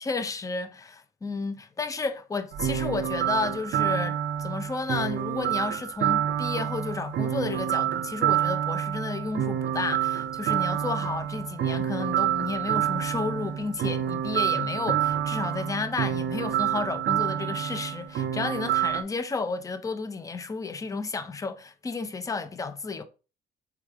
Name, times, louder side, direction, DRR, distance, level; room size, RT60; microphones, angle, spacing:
voice 1, 0.0-23.0, left 4 dB, 15° left, 0.4 m, -32 dB
sound 1, 2.5-19.0, right 10 dB, 65° right, 0.5 m, -28 dB
3.2 x 2.3 x 3.5 m
cardioid pair, 90°, 20 cm